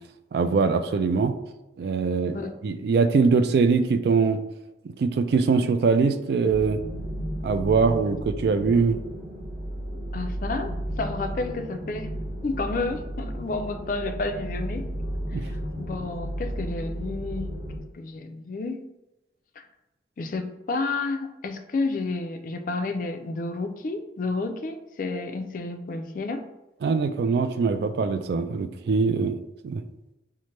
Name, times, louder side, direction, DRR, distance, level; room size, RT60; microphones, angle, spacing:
voice 1, 0.3-1.3 1.8-4.4 4.8-6.8 7.4-9.0 15.3-15.4 26.8-29.4 29.6-29.8, right 4 dB, 60° right, 9 dB, 0.3 m, -22 dB
sound 1, 6.5-17.8, equal, 35° right, 0.9 m, -33 dB
voice 2, 10.1-12.1 12.4-14.9 15.8-17.5 17.9-18.8 19.6-19.7 20.2-26.4, left 3 dB, 50° left, 7 dB, 0.4 m, -30 dB
5.7 x 2.1 x 3.1 m, 0.98 s
head